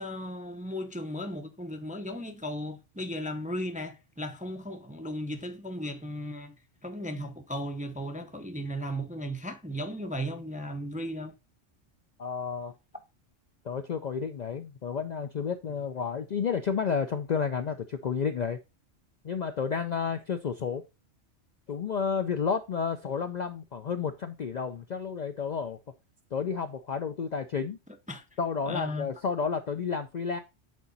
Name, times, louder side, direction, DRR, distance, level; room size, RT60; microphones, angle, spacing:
voice 1, 0.0-6.5 6.8-11.4 28.1-28.2 28.7-29.1, equal, 10° right, 0.5 m, -36 dB
voice 2, 12.2-12.7 13.6-18.6 19.2-20.8 21.7-25.8 26.3-27.8 28.4-30.4, left 6 dB, 55° left, 0.5 m, -31 dB
8.4 x 4.0 x 4.0 m
omnidirectional pair, 1.2 m